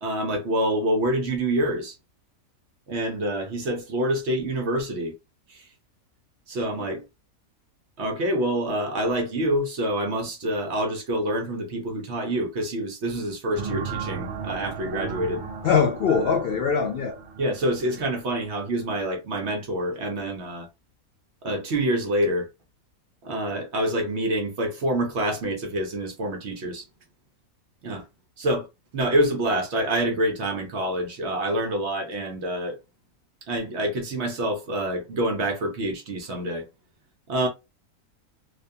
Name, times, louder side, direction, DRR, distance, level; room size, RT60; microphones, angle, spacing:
voice 1, 0.0-2.0 2.9-5.1 5.5-5.7 6.5-7.0 8.0-15.4 17.4-20.7 21.4-22.5 23.2-26.9 27.8-28.0 28.4-28.7 28.9-32.8 33.5-36.7 37.3-37.5, right 1 dB, 60° right, 0.8 m, -26 dB
sound 1, 13.5-18.9, right 6 dB, 80° right, 1.1 m, -36 dB
voice 2, 15.6-17.2, left 6 dB, 75° left, 0.5 m, -22 dB
2.5 x 2.2 x 2.6 m
omnidirectional pair, 1.5 m